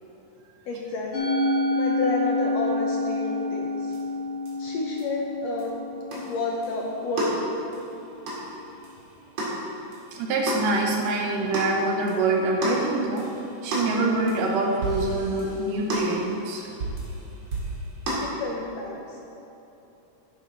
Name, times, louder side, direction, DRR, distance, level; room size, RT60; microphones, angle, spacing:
voice 1, 0.7-1.3 1.8-4.0 4.6-5.8 6.1-7.5 18.2-19.2, left 3 dB, 70° left, -1 dB, 1.7 m, -30 dB
Musical instrument, 1.1-7.5, left 2 dB, 50° left, 1.8 m, -28 dB
sound 1, 3.9-4.0 4.5-4.6 5.0-5.1 5.6-5.7 6.1-18.3, right 1 dB, 45° right, 2.7 m, -33 dB
voice 2, 10.1-13.3 13.6-16.7, right 2 dB, 85° right, 1 dB, 2.5 m, -25 dB
10.5 x 9.8 x 3.9 m, 3.0 s
omnidirectional pair, 3.7 m